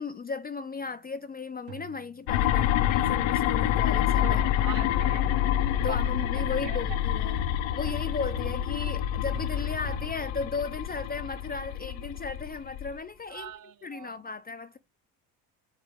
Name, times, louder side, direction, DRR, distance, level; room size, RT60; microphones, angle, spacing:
voice 1, 0.0-4.9 5.8-7.4 7.7-13.5 13.8-14.8, left 4 dB, 20° left, 0.4 m, -36 dB
sound 1, 0.7-1.0 1.7-2.6 3.5-10.2, right 12 dB, 85° right, 1.6 m, -47 dB
sound 2, 2.3-13.0, left 11 dB, 75° left, 0.7 m, -27 dB
voice 2, 4.2-5.2 6.3-6.8 13.3-14.1, right 11 dB, 45° right, 0.6 m, -42 dB
8.1 x 3.6 x 3.4 m
cardioid pair, 115°, 46 cm